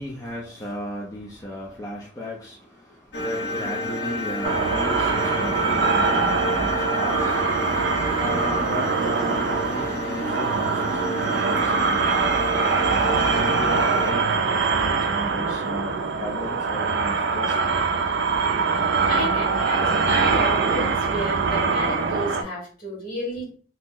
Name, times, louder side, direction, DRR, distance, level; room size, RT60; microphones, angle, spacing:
voice 1, 0.0-12.3 12.9-18.0, equal, 20° left, -3 dB, 0.4 m, -36 dB
sound 1, 3.1-14.1, left 1 dB, 65° left, 0.8 m, -30 dB
sound 2, 4.4-22.4, right 4 dB, 65° right, 0.3 m, -23 dB
voice 2, 19.0-23.6, equal, 50° left, -3 dB, 1.5 m, -31 dB
2.8 x 2.0 x 3.7 m, 0.41 s
head